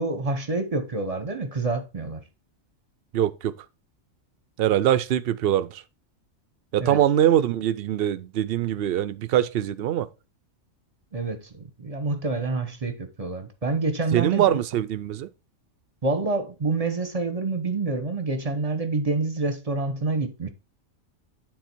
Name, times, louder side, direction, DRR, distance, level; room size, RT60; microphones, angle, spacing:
voice 1, 0.0-2.2 6.8-7.0 11.1-14.6 16.0-20.5, right 3 dB, 30° right, 0.9 m, -27 dB
voice 2, 3.1-3.5 4.6-5.8 6.7-10.1 14.1-15.3, right 11 dB, 60° right, 0.7 m, -23 dB
9.4 x 3.9 x 4.5 m
omnidirectional pair, 1.3 m